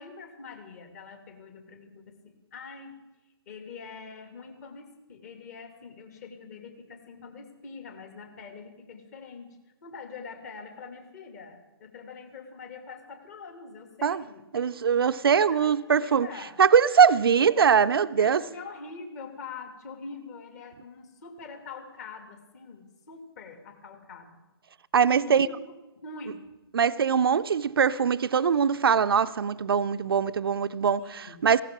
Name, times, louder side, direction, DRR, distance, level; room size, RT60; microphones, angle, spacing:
voice 1, 0.0-2.1 2.5-3.0 3.5-9.5 9.8-14.6 15.4-16.5 18.0-24.3 25.2-25.5 26.0-26.4 31.0-31.4, left 4 dB, 40° left, 2.3 m, -44 dB
voice 2, 14.5-16.3 16.6-18.4 24.9-25.5 26.7-31.6, right 7 dB, 65° right, 0.5 m, -22 dB
18.0 x 16.0 x 3.6 m
figure-of-eight pair, 135°, 13 cm